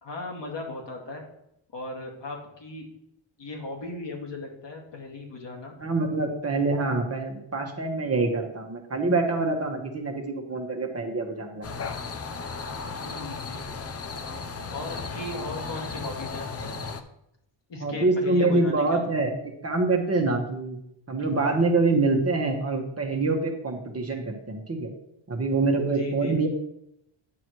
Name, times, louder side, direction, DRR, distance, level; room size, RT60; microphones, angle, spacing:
voice 1, 0.0-1.2 1.7-2.9 3.4-5.7 13.0-13.7 14.7-16.7 17.7-19.2 21.2-21.3 25.8-26.4, left 2 dB, 60° left, 0 dB, 2.2 m, -37 dB
voice 2, 5.8-11.9 17.8-19.3 19.6-20.8 21.1-24.9 25.3-26.5, right 3 dB, 30° right, 2 dB, 1.3 m, -25 dB
sound 1, 11.6-17.0, left 4 dB, 30° left, 0.7 m, -35 dB
9.7 x 6.0 x 3.1 m, 0.79 s
cardioid pair, 95°, 50 cm